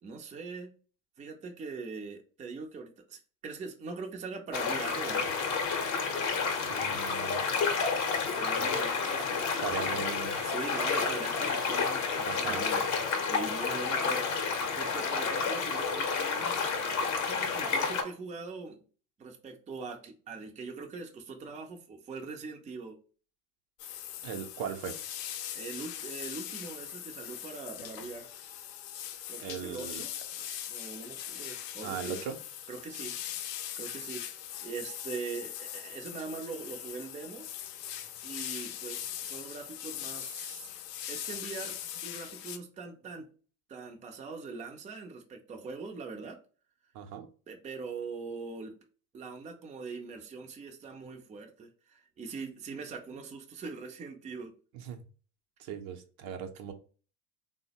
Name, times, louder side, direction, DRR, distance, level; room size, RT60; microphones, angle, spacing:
voice 1, 0.0-0.7 1.2-5.3 8.2-9.4 9.7-10.1 10.4-14.3 14.8-16.7 17.2-18.8 19.2-23.0 25.5-28.3 29.3-32.2 32.7-33.2 33.8-34.3 34.6-37.5 38.2-40.7 41.1-41.8 42.0-43.3 43.7-46.4 47.5-48.7 49.1-54.5, right 4 dB, 15° right, 2 dB, 0.5 m, -42 dB
sound 1, 4.5-18.0, left 5 dB, 40° left, 0.8 m, -30 dB
voice 2, 6.7-7.4 8.6-8.7 9.6-10.4 12.3-12.6 24.2-25.0 29.4-30.0 31.8-32.4 46.9-47.3 54.7-55.0 55.6-56.7, right 8 dB, 60° right, 5 dB, 0.7 m, -38 dB
sound 2, 23.8-42.6, left 10 dB, 80° left, 0.6 m, -41 dB
3.3 x 2.1 x 2.8 m, 0.39 s
hypercardioid pair, 80°, 48 cm